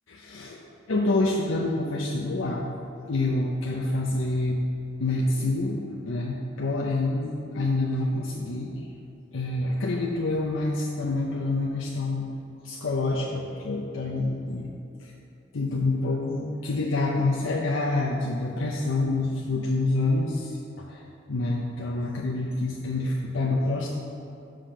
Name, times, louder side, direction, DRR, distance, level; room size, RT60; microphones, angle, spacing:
voice 1, 0.1-0.6 0.9-2.8 3.1-4.6 5.0-8.8 9.3-12.3 12.6-14.7 15.0-15.1 15.5-21.0 21.3-23.9, left 2 dB, 90° left, -3 dB, 0.7 m, -27 dB
5.9 x 5.1 x 6.3 m, 2.8 s
head